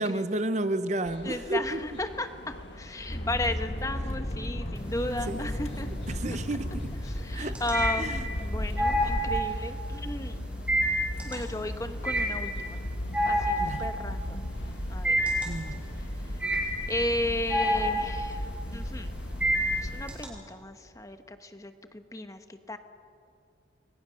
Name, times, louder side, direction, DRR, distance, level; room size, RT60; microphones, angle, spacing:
voice 1, 0.0-1.8 5.3-5.7 6.1-6.9 7.3-7.6 8.0-8.3 13.6-13.9 15.4-15.9, right 2 dB, 40° right, 0.7 m, -32 dB
sound 1, 1.0-20.0, left 1 dB, 70° left, 1.7 m, -37 dB
voice 2, 1.2-5.9 7.0-10.4 11.2-12.8 13.3-14.4 14.9-15.2 16.9-19.1 19.8-22.8, left 1 dB, 15° left, 1.1 m, -34 dB
sound 2, 3.1-9.4, equal, 35° left, 1.3 m, -34 dB
sound 3, 4.8-5.4 5.8-20.2, equal, 5° right, 4.7 m, -29 dB
29.5 x 21.5 x 6.4 m
head